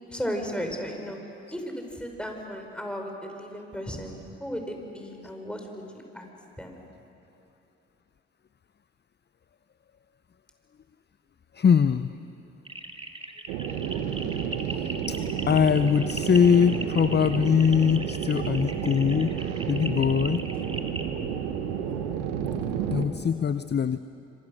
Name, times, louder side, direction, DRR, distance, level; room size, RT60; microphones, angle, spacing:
voice 1, 0.1-1.2 1.5-5.8 6.1-6.2 6.6-6.8 21.6-22.1, equal, 5° left, 2 dB, 5.6 m, -35 dB
voice 2, 11.5-12.1 14.7-15.2 15.5-19.4 19.7-20.4 22.9-24.0, left 7 dB, 35° left, 13 dB, 0.7 m, -22 dB
sound 1, 12.6-21.1, right 1 dB, 20° right, 2.8 m, -38 dB
sound 2, 13.5-23.1, right 8 dB, 80° right, 1.4 m, -31 dB
26.0 x 25.0 x 6.7 m, 2.8 s
hypercardioid pair, 40°, 31 cm